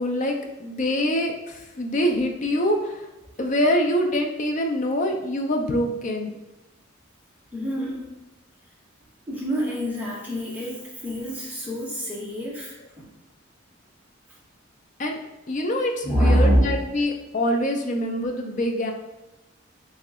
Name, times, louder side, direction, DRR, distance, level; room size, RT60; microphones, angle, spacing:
voice 1, 0.0-3.1 3.4-6.3 15.0-15.2 15.5-18.9, equal, 35° left, 3 dB, 0.5 m, -25 dB
voice 2, 7.5-8.1 9.3-13.1 16.0-16.7, equal, 10° right, -5 dB, 0.8 m, -25 dB
3.1 x 2.8 x 3.6 m, 1.1 s
head